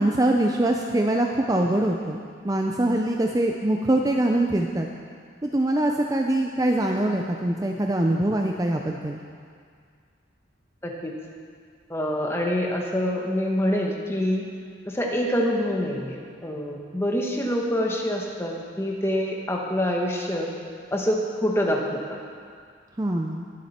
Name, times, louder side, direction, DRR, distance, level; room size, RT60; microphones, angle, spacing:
voice 1, 0.0-4.9 5.4-9.2 23.0-23.5, right 1 dB, 20° right, 2 dB, 0.5 m, -23 dB
voice 2, 10.8-11.1 11.9-14.4 14.9-20.5 20.9-22.2, equal, 15° left, -1 dB, 1.3 m, -26 dB
21.5 x 7.5 x 4.3 m, 2.1 s
head